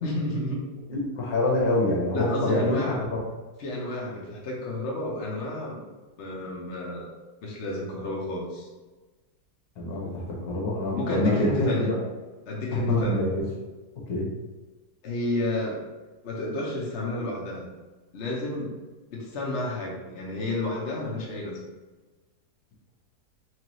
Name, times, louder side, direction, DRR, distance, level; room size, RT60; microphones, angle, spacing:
voice 1, 0.0-0.7 2.1-3.0 3.6-5.9 6.2-7.1 7.4-8.7 10.9-12.0 12.5-13.2 15.0-15.8 16.2-17.7 18.1-18.7 19.1-21.6, left 1 dB, 55° left, -3 dB, 0.9 m, -31 dB
voice 2, 0.9-2.8 9.8-11.9 12.9-13.4 14.1-14.2, left 2 dB, 70° left, -3 dB, 1.4 m, -25 dB
4.5 x 2.6 x 3.0 m, 1.2 s
omnidirectional pair, 1.7 m